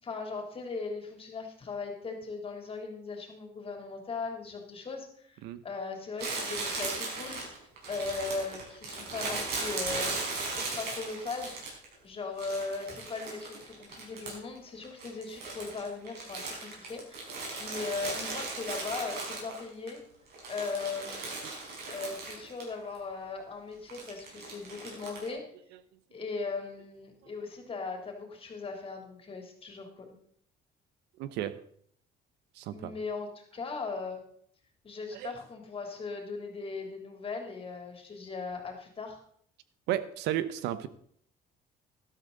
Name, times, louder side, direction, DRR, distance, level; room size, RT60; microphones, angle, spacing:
voice 1, 0.0-7.4 7.9-10.2 10.6-11.6 12.0-20.0 20.5-21.3 21.9-25.4 26.1-30.2 32.7-34.2 34.8-39.2, left 4 dB, 35° left, 3 dB, 3.4 m, -38 dB
Crumpling crinkling, 6.2-11.9 12.4-14.6 14.8-19.9 20.3-22.7 22.9-23.0 23.9-25.3, right 3 dB, 70° right, 5.7 m, -37 dB
voice 2, 31.2-31.6 32.5-32.9 35.1-35.3 39.9-40.9, right 12 dB, 90° right, 14 dB, 1.0 m, -33 dB
13.0 x 12.0 x 4.0 m, 0.62 s
cardioid pair, 110°, 17 cm